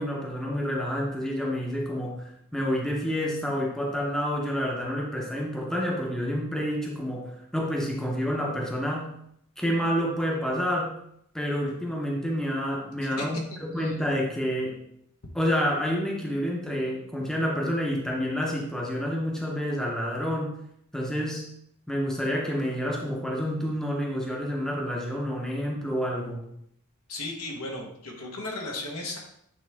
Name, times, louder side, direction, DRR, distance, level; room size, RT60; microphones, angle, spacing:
voice 1, 0.0-9.1 9.6-10.9 11.3-14.8 15.3-20.6 20.9-21.4 21.9-26.4, equal, 5° left, -2 dB, 0.9 m, -28 dB
voice 2, 27.1-29.2, left 2 dB, 75° left, 0 dB, 1.3 m, -35 dB
8.3 x 3.5 x 3.6 m, 0.73 s
head